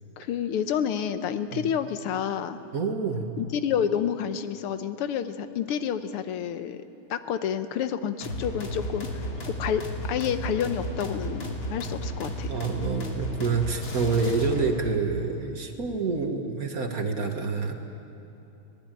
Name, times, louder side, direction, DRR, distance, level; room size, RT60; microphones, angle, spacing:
voice 1, 0.2-2.6 3.4-6.8 7.1-12.5, left 8 dB, 85° left, 10 dB, 1.9 m, -29 dB
voice 2, 2.7-3.3 12.5-17.7, right 4 dB, 45° right, 4 dB, 1.9 m, -27 dB
sound 1, 8.2-14.9, equal, 65° left, 3.4 m, -33 dB
24.5 x 19.0 x 9.0 m, 2.9 s
omnidirectional pair, 2.4 m